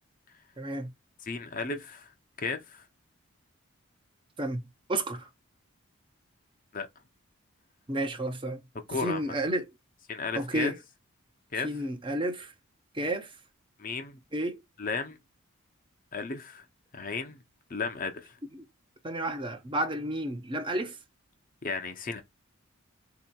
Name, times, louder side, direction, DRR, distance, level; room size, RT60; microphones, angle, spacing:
voice 1, 0.6-0.9 4.4-5.3 7.9-8.6 9.0-9.6 10.3-10.7 11.6-12.5 12.9-13.3 14.3-14.6 19.0-21.0, right 1 dB, 20° right, 0.7 m, -31 dB
voice 2, 1.2-2.9 6.7-6.9 8.9-9.2 10.1-10.7 11.5-11.8 13.8-14.2 14.8-15.2 16.1-16.6 16.9-17.4 17.7-18.4 21.6-22.2, left 4 dB, 40° left, 0.6 m, -34 dB
4.2 x 2.8 x 2.2 m
head